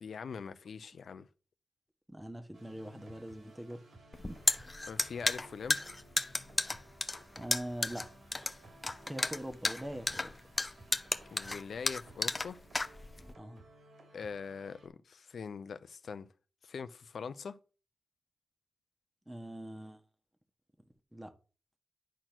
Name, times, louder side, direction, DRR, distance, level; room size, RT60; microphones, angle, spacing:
voice 1, 0.0-1.3 4.9-5.8 11.3-12.6 14.1-16.3 16.6-17.6, left 6 dB, 70° left, 0.6 m, -42 dB
voice 2, 2.1-3.8 4.2-4.4 7.4-8.1 8.3-8.6 9.1-10.3 13.3-13.6 19.3-20.0 21.1-21.3, right 1 dB, 10° right, 1.4 m, -43 dB
sound 1, 2.5-14.9, right 1 dB, 75° right, 3.2 m, -58 dB
sound 2, 4.1-13.3, left 2 dB, 25° left, 0.7 m, -33 dB
10.5 x 4.3 x 6.1 m
wide cardioid pair, 90°, 0 cm